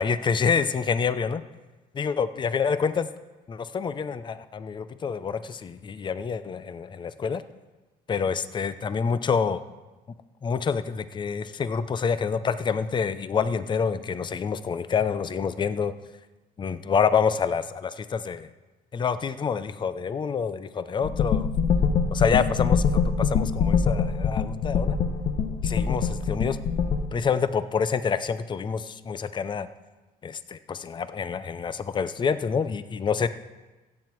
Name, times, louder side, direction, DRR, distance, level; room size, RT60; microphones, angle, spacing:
voice 1, 0.0-1.4 2.0-3.1 3.5-7.4 8.1-9.6 10.4-15.9 16.6-18.5 18.9-21.5 22.1-25.0 25.6-26.6 27.1-29.7 30.2-33.3, left 6 dB, 25° left, 13 dB, 0.5 m, -27 dB
sound 1, 21.0-27.0, left 6 dB, 55° left, 1.2 m, -24 dB
16.0 x 7.6 x 4.6 m, 1.2 s
cardioid pair, 110°, 17 cm